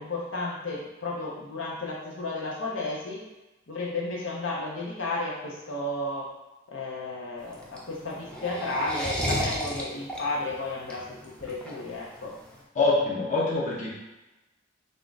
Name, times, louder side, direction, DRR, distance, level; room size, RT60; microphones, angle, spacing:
voice 1, 0.0-3.3 3.7-6.3 6.7-12.4, left 2 dB, 65° left, -4 dB, 0.9 m, -33 dB
sound 1, 7.4-12.6, equal, 5° left, 0.6 m, -33 dB
voice 2, 12.8-14.0, left 3 dB, 40° left, -5 dB, 0.8 m, -25 dB
3.7 x 2.4 x 4.0 m, 1.0 s
head